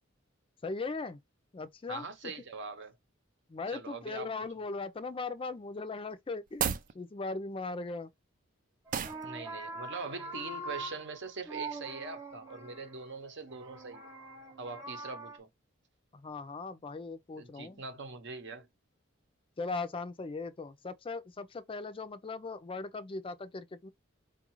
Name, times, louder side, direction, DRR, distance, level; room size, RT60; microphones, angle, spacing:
voice 1, 0.6-1.2 1.5-2.3 3.5-6.7 6.9-8.1 16.1-17.8 19.6-23.9, left 3 dB, 25° left, 0.4 m, -39 dB
voice 2, 1.9-3.0 3.7-4.3 9.2-14.1 14.6-15.5 17.3-18.7, right 4 dB, 60° right, 0.8 m, -42 dB
sound 1, 6.5-6.9 8.9-9.2, right 8 dB, 40° right, 0.3 m, -32 dB
sound 2, 8.9-15.4, right 3 dB, 15° right, 0.8 m, -43 dB
4.6 x 2.4 x 2.9 m
head